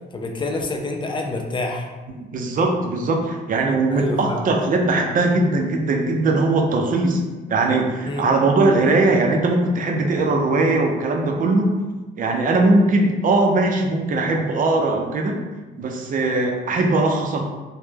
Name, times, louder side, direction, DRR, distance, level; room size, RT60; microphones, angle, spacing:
voice 1, 0.1-1.9 3.9-4.5 8.1-8.3, left 2 dB, 25° left, 3 dB, 0.4 m, -27 dB
voice 2, 2.1-7.2 7.5-11.7 12.2-15.4 15.8-17.4, right 2 dB, 45° right, 2 dB, 0.5 m, -20 dB
2.1 x 2.1 x 3.2 m, 1.2 s
cardioid pair, 90°, 20 cm